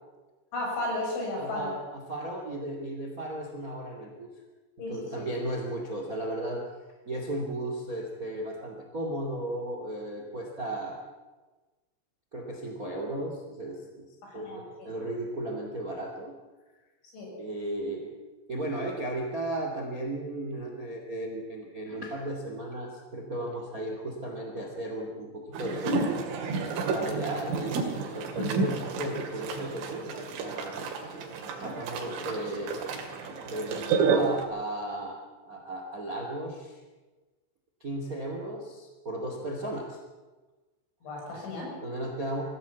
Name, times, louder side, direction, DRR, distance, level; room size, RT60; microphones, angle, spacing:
voice 1, 0.5-1.7 4.8-5.3 14.2-14.9 17.1-17.3 41.0-41.7, left 2 dB, 70° left, -2 dB, 9.2 m, -34 dB
voice 2, 1.4-4.3 4.9-6.7 7.1-11.0 12.3-14.0 14.3-16.3 17.3-18.1 18.5-26.2 26.9-30.9 31.4-32.8 33.4-35.2 35.4-36.8 37.8-40.0 41.8-42.4, right 1 dB, 25° right, 2 dB, 1.9 m, -35 dB
sound 1, 25.5-34.4, right 4 dB, 90° right, 5.0 m, -31 dB
22.0 x 15.5 x 8.4 m, 1.2 s
omnidirectional pair, 5.6 m